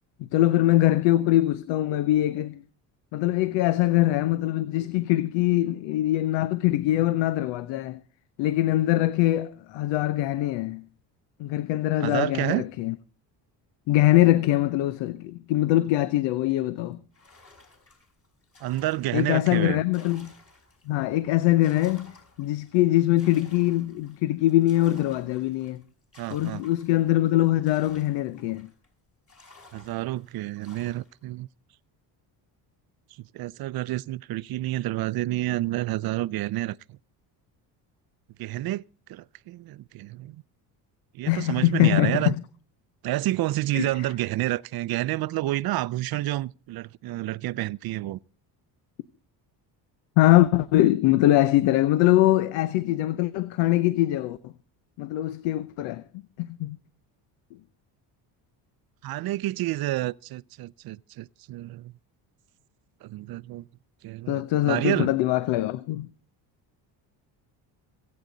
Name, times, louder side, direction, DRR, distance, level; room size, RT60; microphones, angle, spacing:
voice 1, 0.2-2.6 3.1-8.0 8.4-10.9 11.4-12.9 13.9-17.0 19.1-20.3 20.9-22.1 22.4-25.8 26.3-28.7 41.3-42.3 43.7-43.9 50.2-54.5 55.0-56.0 56.4-56.8 64.3-66.1, left 15 dB, 85° left, 0.8 m, -23 dB
voice 2, 12.0-12.7 18.6-19.8 26.2-26.6 29.7-31.5 33.3-37.0 38.4-38.8 39.1-40.4 41.1-42.3 43.0-48.2 59.0-61.9 63.0-63.7 64.0-65.1, right 16 dB, 55° right, 0.6 m, -29 dB
sound 1, 17.1-21.0 21.4-28.9 29.3-31.2, left 3 dB, 30° left, 5.0 m, -54 dB
26.0 x 8.7 x 3.9 m
cardioid pair, 95°, 43 cm